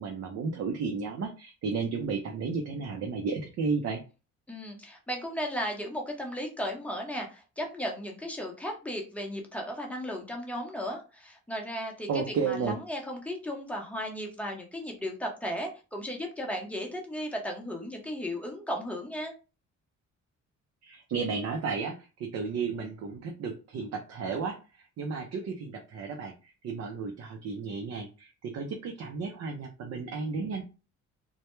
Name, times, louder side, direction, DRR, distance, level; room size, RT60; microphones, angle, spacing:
voice 1, 0.0-4.0 12.1-12.8 20.8-30.6, right 5 dB, 55° right, 3 dB, 0.5 m, -33 dB
voice 2, 4.5-19.3, equal, 5° left, 0 dB, 0.8 m, -35 dB
2.2 x 2.1 x 3.0 m, 0.32 s
cardioid pair, 90°, 30 cm